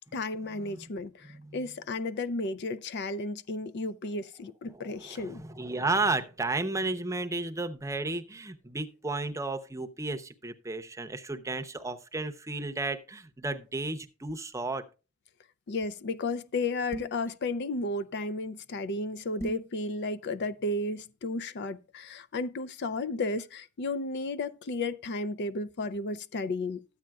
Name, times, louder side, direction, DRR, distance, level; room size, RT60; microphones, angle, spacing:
voice 1, 0.1-5.4 15.7-26.8, left 2 dB, 55° left, 0.4 m, -33 dB
voice 2, 1.2-1.6 4.7-14.8, right 3 dB, 15° right, 0.7 m, -33 dB
sound 1, 16.9-17.3 19.4-19.7, right 1 dB, 15° left, 1.2 m, -38 dB
13.0 x 8.8 x 2.3 m
head